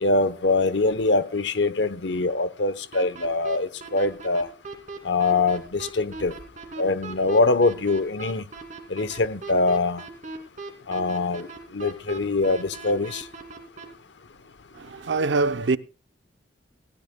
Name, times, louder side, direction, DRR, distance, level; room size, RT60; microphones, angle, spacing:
voice 1, 0.0-4.5 5.0-6.3 6.8-8.4 8.9-10.0 10.9-11.5 11.7-13.2, left 3 dB, 70° left, 0.9 m, -23 dB
sound 1, 2.9-13.8, right 4 dB, 45° right, 2.6 m, -39 dB
voice 2, 14.7-15.8, right 3 dB, 75° right, 0.7 m, -24 dB
20.0 x 16.0 x 2.3 m
head